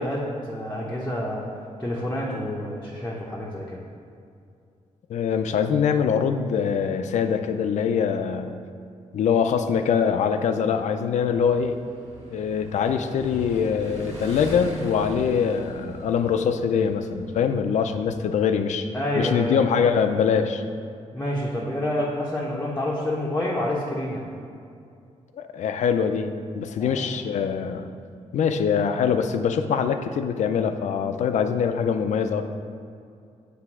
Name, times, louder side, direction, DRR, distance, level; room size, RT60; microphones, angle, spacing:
voice 1, 0.0-3.8 18.9-19.6 21.1-24.3 26.8-27.1, left 1 dB, 15° left, -5 dB, 0.7 m, -28 dB
voice 2, 5.1-8.6 9.1-11.8 12.3-18.9 19.2-20.6 25.3-27.9 28.3-32.5, left 7 dB, 75° left, 8 dB, 0.4 m, -23 dB
Motorcycle / Engine, 11.2-18.2, right 1 dB, 85° right, 1.8 m, -41 dB
7.7 x 3.3 x 6.0 m, 2.4 s
wide cardioid pair, 140°, 12 cm